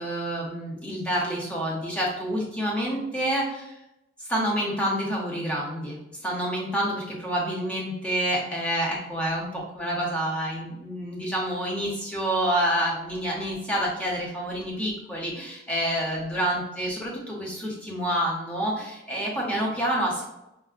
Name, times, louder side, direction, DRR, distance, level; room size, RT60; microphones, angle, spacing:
voice 1, 0.0-3.7 4.3-20.2, right 1 dB, 5° left, -4 dB, 0.6 m, -28 dB
4.5 x 2.0 x 2.4 m, 0.91 s
head